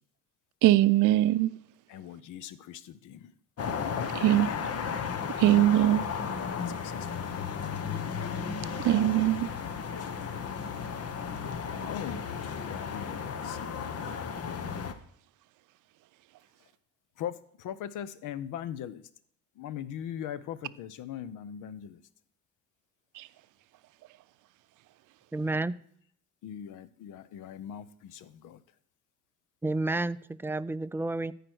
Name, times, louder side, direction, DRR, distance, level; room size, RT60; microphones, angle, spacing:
voice 1, 0.6-1.5 4.1-4.5 5.4-6.0 8.8-9.5 23.2-23.3, right 15 dB, 80° right, 0.5 m, -22 dB
voice 2, 1.9-3.3 4.1-4.6 6.5-7.1 11.9-12.3 12.6-13.6 17.2-19.0 19.6-22.0 26.4-28.6, left 9 dB, 85° left, 0.7 m, -40 dB
sound 1, 3.6-14.9, left 6 dB, 55° left, 1.1 m, -34 dB
voice 3, 25.3-25.8 29.6-31.3, right 2 dB, 10° right, 0.3 m, -30 dB
13.5 x 5.0 x 6.1 m
cardioid pair, 90°, 30 cm